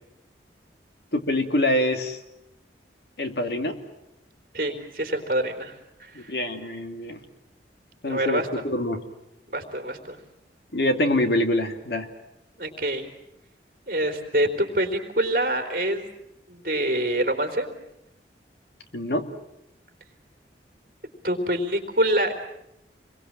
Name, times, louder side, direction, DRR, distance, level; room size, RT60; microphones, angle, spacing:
voice 1, 1.1-2.2 3.2-3.8 6.1-7.2 8.0-9.0 10.7-12.1 18.9-19.3, left 1 dB, 65° left, 6 dB, 2.5 m, -25 dB
voice 2, 4.5-5.7 6.0-6.4 8.1-8.6 9.5-10.2 12.6-13.1 13.9-16.1 16.5-17.7 21.2-22.3, right 1 dB, 50° right, 5 dB, 3.9 m, -26 dB
28.5 x 22.5 x 7.7 m, 0.83 s
head